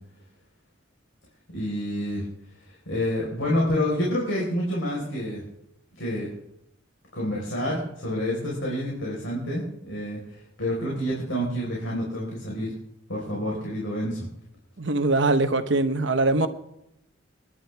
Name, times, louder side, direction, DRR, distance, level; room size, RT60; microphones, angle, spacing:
voice 1, 1.5-2.2 2.9-5.4 6.0-6.3 7.1-12.7 13.1-14.3, equal, 75° left, -3 dB, 4.6 m, -28 dB
voice 2, 14.8-16.5, right 2 dB, 65° right, 9 dB, 1.1 m, -22 dB
27.0 x 11.5 x 3.5 m, 0.78 s
head